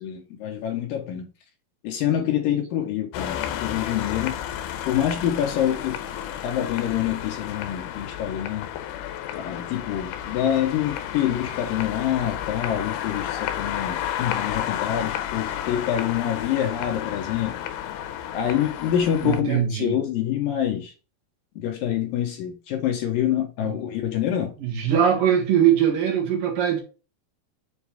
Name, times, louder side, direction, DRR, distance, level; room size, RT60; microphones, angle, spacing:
voice 1, 0.0-1.3 1.8-4.4 4.9-6.0 6.4-8.7 9.3-17.6 18.3-20.9 21.6-24.5, left 10 dB, 70° left, 2.3 m, -26 dB
sound 1, 3.1-19.4, left 11 dB, 90° left, 2.7 m, -32 dB
voice 2, 19.2-20.0 23.6-23.7 24.6-26.8, right 9 dB, 65° right, 3.0 m, -21 dB
7.2 x 3.9 x 3.5 m
omnidirectional pair, 4.6 m